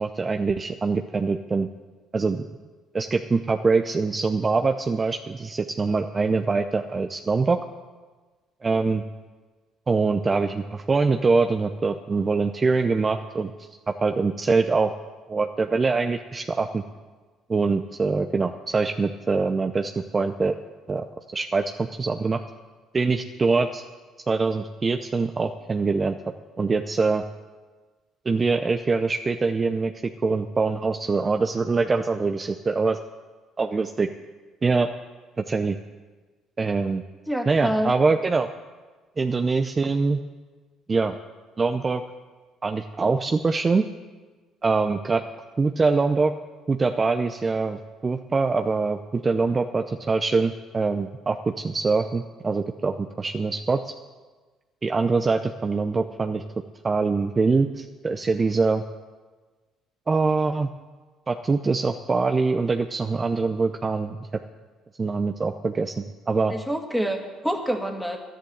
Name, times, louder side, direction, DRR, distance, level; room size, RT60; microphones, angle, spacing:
voice 1, 0.0-1.7 2.1-2.4 2.9-7.6 8.6-9.0 9.9-13.5 13.9-14.9 15.3-16.8 17.5-20.6 20.9-21.0 21.3-22.4 22.9-23.8 24.3-26.2 26.6-27.2 28.3-33.0 33.6-34.1 34.6-34.9 35.4-35.8 36.6-37.0 37.5-38.5 39.2-40.2 40.9-41.2 41.6-42.0 42.6-43.9 44.6-45.2 45.6-46.3 46.7-53.9 54.8-56.4 56.8-58.8 60.1-60.7 61.3-64.2 65.0-66.5, right 4 dB, 30° right, 6 dB, 0.6 m, -24 dB
voice 2, 37.3-37.9 66.5-68.2, equal, ahead, 2 dB, 2.2 m, -27 dB
11.5 x 10.0 x 7.8 m, 1.3 s
supercardioid pair, 70°, 0 cm